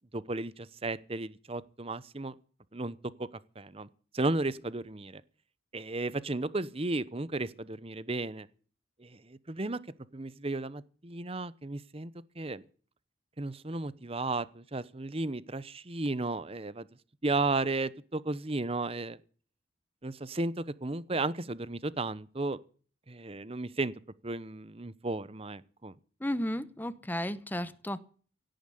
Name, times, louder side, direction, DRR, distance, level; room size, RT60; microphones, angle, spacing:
voice 1, 0.1-2.3 2.7-3.3 3.6-3.9 4.1-5.2 5.7-8.5 9.0-9.8 10.1-12.1 12.4-12.6 13.4-16.9 17.2-19.2 20.0-22.6 23.1-23.9 24.2-26.0, right 2 dB, 30° right, 0.9 m, -34 dB
voice 2, 26.2-28.0, left 1 dB, 10° left, 1.0 m, -33 dB
17.5 x 9.2 x 8.4 m
head